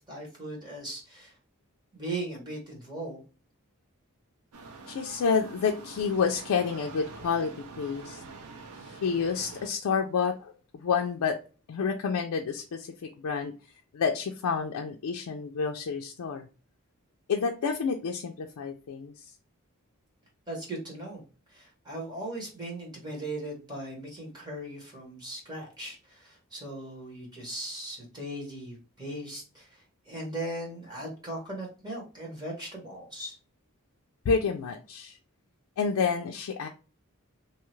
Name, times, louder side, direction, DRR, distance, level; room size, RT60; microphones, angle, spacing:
voice 1, 0.0-1.3 1.9-3.2 20.5-21.2 21.5-33.4, right 1 dB, 20° right, -3 dB, 1.2 m, -38 dB
sound 1, 4.5-9.7, right 3 dB, 75° right, 0.5 m, -45 dB
voice 2, 4.9-7.5 7.8-8.2 8.8-10.5 10.8-11.4 11.7-13.5 13.9-16.5 17.3-19.1 34.3-35.2 35.8-36.7, left 5 dB, 80° left, 2 dB, 0.4 m, -29 dB
2.8 x 2.3 x 3.0 m, 0.34 s
head